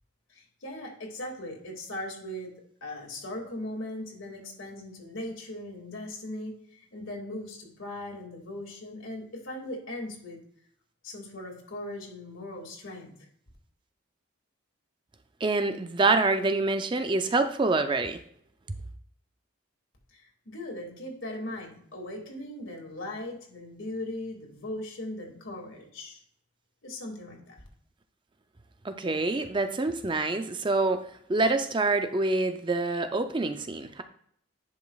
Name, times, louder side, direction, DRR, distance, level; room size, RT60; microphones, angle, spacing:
voice 1, 0.3-2.5 2.8-10.4 11.0-13.1 20.1-26.2 26.8-27.6, left 1 dB, 75° left, 0 dB, 2.1 m, -39 dB
voice 2, 15.4-18.2 28.8-34.0, right 3 dB, 25° right, 8 dB, 0.4 m, -26 dB
10.5 x 6.0 x 2.3 m, 0.66 s
head